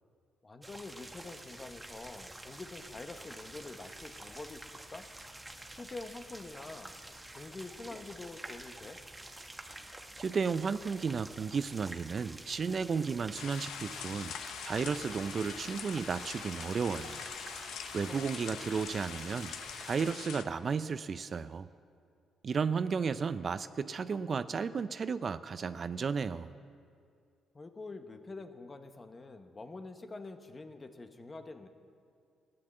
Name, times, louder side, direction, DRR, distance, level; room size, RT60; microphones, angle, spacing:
voice 1, 0.4-5.1 5.8-7.0 7.3-9.0 18.1-18.7 27.5-31.7, left 3 dB, 30° left, 8 dB, 1.1 m, -46 dB
sound 1, 0.6-20.1, right 1 dB, 10° right, 1.2 m, -48 dB
voice 2, 10.2-14.4 14.6-17.2 17.9-19.5 19.8-21.7 22.4-26.5, right 5 dB, 45° right, 13 dB, 0.4 m, -33 dB
sound 2, 13.3-20.4, left 8 dB, 85° left, 0.7 m, -44 dB
14.5 x 9.8 x 7.7 m, 2.3 s
cardioid pair, 90°, 0 cm